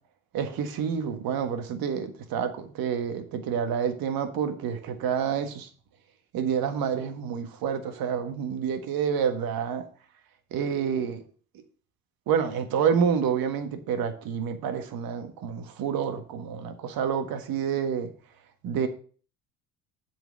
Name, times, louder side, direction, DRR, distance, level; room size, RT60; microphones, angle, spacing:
voice 1, 0.3-5.7 6.3-9.8 10.5-11.2 12.3-18.1 18.6-18.9, right 7 dB, 55° right, 1.6 m, -28 dB
7.9 x 4.8 x 6.5 m
hypercardioid pair, 65°, 42 cm